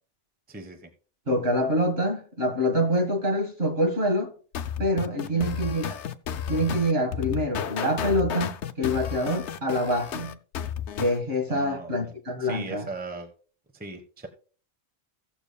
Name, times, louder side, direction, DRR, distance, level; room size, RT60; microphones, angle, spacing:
voice 1, 0.5-0.9 5.2-5.5 11.5-12.1 12.4-13.3 13.7-14.3, right 2 dB, 10° right, 1.0 m, -38 dB
voice 2, 1.3-4.3 4.8-6.0 6.5-10.4 11.0-12.9, equal, 55° right, 2.1 m, -26 dB
sound 1, 4.5-11.2, left 9 dB, 75° left, 0.9 m, -32 dB
16.5 x 7.0 x 2.2 m
omnidirectional pair, 1.2 m